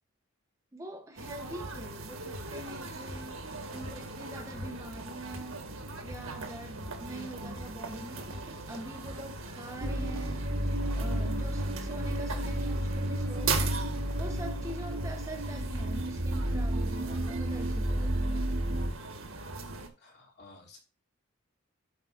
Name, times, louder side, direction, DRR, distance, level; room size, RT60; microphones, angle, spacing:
voice 1, 0.7-5.7 6.0-10.5 10.9-13.7 14.2-18.5, right 1 dB, 15° right, 0.9 m, -44 dB
sound 1, 1.2-19.9, right 3 dB, 75° right, 1.7 m, -40 dB
sound 2, 9.8-18.9, right 1 dB, 45° right, 1.2 m, -31 dB
voice 2, 20.0-20.8, left 3 dB, 50° left, 3.0 m, -54 dB
12.0 x 5.5 x 2.5 m
head